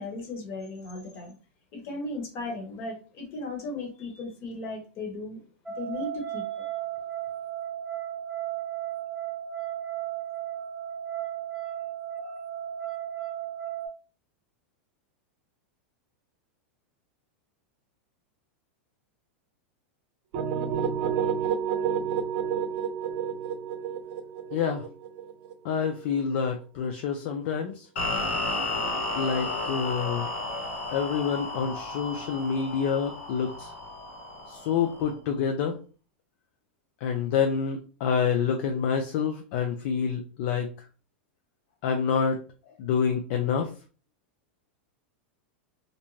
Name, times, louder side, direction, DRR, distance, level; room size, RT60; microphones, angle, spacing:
voice 1, 0.0-1.3 1.7-5.4 5.8-6.7, left 2 dB, 45° left, 2 dB, 1.1 m, -36 dB
sound 1, 5.7-13.9, right 11 dB, 5° right, 0.4 m, -35 dB
sound 2, 20.3-26.2, right 7 dB, 50° right, 0.6 m, -30 dB
voice 2, 24.5-24.8 25.6-27.9 29.1-30.3 30.9-33.7 34.5-35.8 37.0-40.7 41.8-42.4 42.8-43.7, left 6 dB, 60° left, 4 dB, 0.4 m, -27 dB
sound 3, 28.0-35.1, left 2 dB, 80° left, 1.3 m, -33 dB
2.6 x 2.1 x 3.0 m, 0.37 s
hypercardioid pair, 120°, 6 cm